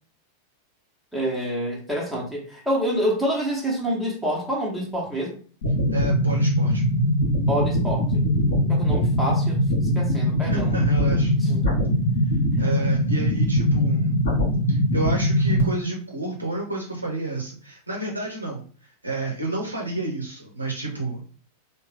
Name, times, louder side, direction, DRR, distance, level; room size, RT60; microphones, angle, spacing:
voice 1, 1.1-5.4 7.5-8.2 8.7-9.6 9.9-10.7 11.4-11.6, equal, 5° right, -4 dB, 1.0 m, -27 dB
sound 1, 5.6-15.6, equal, 60° left, 1.2 m, -21 dB
voice 2, 5.9-6.8 10.4-11.3 12.6-14.2 14.7-18.6 19.0-21.2, right 2 dB, 85° right, 0 dB, 0.7 m, -30 dB
3.6 x 2.2 x 3.3 m, 0.42 s
figure-of-eight pair, 90°, 0 cm